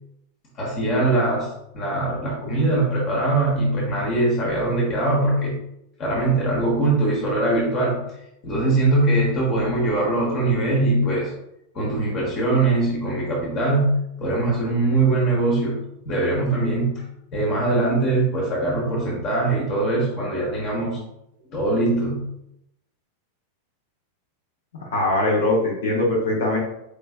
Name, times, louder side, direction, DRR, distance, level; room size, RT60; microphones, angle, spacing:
voice 1, 0.5-5.5 6.0-8.0 8.4-11.3 11.7-13.9 14.2-15.8 16.0-17.0 17.3-21.0 21.5-22.2, right 2 dB, 35° left, -3 dB, 1.1 m, -22 dB
voice 2, 24.7-26.6, left 2 dB, 65° left, -4 dB, 1.0 m, -21 dB
4.6 x 3.2 x 2.4 m, 0.82 s
figure-of-eight pair, 90°, 0 cm